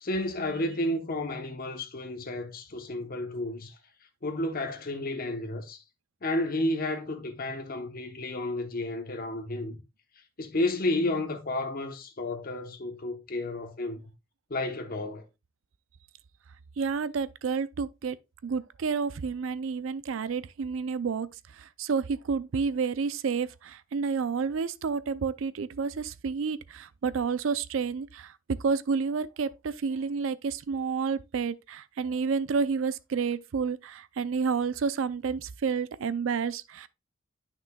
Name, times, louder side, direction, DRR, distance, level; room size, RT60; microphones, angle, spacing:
voice 1, 0.0-3.7 4.2-5.8 6.2-9.8 10.4-14.0 14.5-15.2, left 2 dB, 45° left, 0.9 m, -31 dB
voice 2, 16.8-18.2 18.4-21.3 21.6-28.3 28.6-36.9, right 5 dB, 65° right, 0.4 m, -30 dB
9.9 x 6.0 x 2.2 m
head